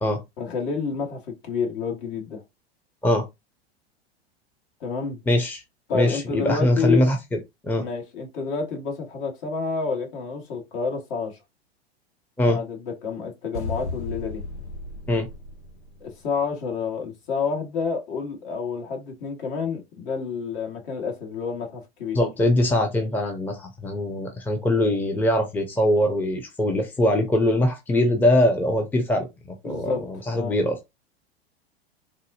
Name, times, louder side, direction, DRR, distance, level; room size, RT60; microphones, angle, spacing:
voice 1, 0.4-2.4 4.8-5.2 5.9-7.1 7.8-11.4 12.5-14.4 16.0-22.2 29.6-30.6, left 5 dB, 55° left, 1.8 m, -29 dB
voice 2, 5.3-5.6 5.9-7.2 7.6-7.8 12.4-12.6 15.1-15.3 22.1-29.3 29.6-30.8, left 1 dB, 5° left, 0.7 m, -22 dB
sound 1, 13.5-16.3, left 3 dB, 85° left, 1.4 m, -35 dB
3.9 x 2.7 x 2.6 m
hypercardioid pair, 100°, 32 cm